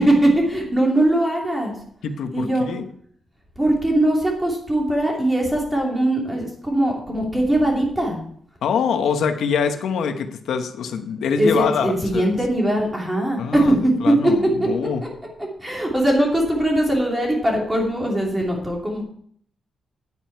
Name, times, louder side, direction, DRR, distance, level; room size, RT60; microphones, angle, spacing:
voice 1, 0.0-1.7 2.3-2.7 3.6-8.2 11.4-14.3 14.6-14.7 15.0-15.1 15.6-19.0, right 1 dB, 10° right, -1 dB, 2.8 m, -20 dB
voice 2, 2.0-2.9 8.6-12.3 13.4-13.8 14.0-14.4 14.7-15.0, left 6 dB, 85° left, 7 dB, 1.0 m, -24 dB
10.0 x 8.8 x 4.6 m, 0.62 s
wide cardioid pair, 165°, 0 cm